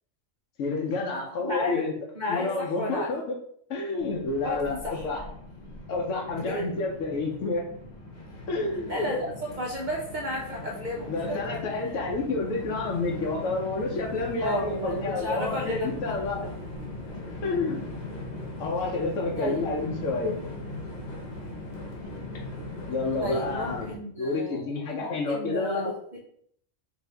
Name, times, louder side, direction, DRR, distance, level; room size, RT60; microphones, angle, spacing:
voice 1, 0.6-1.9 2.3-3.2 3.7-5.2 5.9-7.6 8.5-8.9 11.1-16.5 17.4-18.0 18.6-20.5 22.8-23.9 24.2-25.9, left 3 dB, 85° left, -1 dB, 1.1 m, -29 dB
voice 2, 1.4-1.8 2.2-3.1 4.4-5.1 6.3-6.6 8.9-11.4 14.4-16.1 19.4-19.6 23.2-24.7 25.0-26.2, left 1 dB, 50° right, -3 dB, 0.6 m, -32 dB
Train, 4.0-23.9, left 2 dB, 40° left, 0.8 m, -39 dB
4.4 x 2.6 x 3.4 m, 0.64 s
omnidirectional pair, 1.3 m